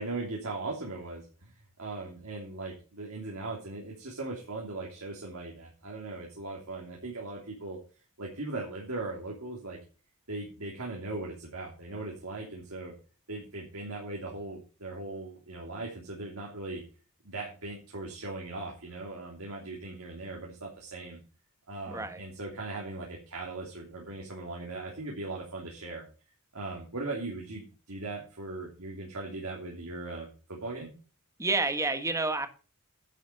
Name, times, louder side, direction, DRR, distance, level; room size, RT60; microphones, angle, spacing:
voice 1, 0.0-1.5 1.8-7.8 8.2-9.8 10.3-12.9 13.3-16.8 17.2-21.2 21.7-26.1 26.5-30.9, right 2 dB, 85° right, 3.0 m, -39 dB
voice 2, 21.9-22.2 31.4-32.5, right 3 dB, 15° right, 1.4 m, -29 dB
11.0 x 7.3 x 5.2 m
head